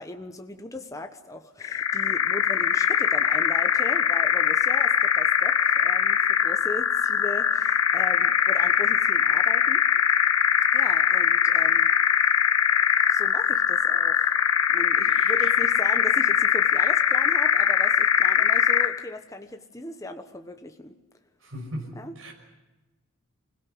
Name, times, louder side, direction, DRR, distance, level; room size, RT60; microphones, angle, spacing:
voice 1, 0.0-9.8 10.7-11.9 13.1-14.4 14.7-21.0 21.9-22.2, left 1 dB, 15° left, 6 dB, 1.1 m, -38 dB
sound 1, 1.6-19.0, left 8 dB, 80° left, 1.0 m, -22 dB
voice 2, 15.2-15.5 21.5-21.9 22.2-22.3, equal, 65° right, 0 dB, 5.8 m, -37 dB
26.0 x 17.0 x 9.5 m, 1.1 s
head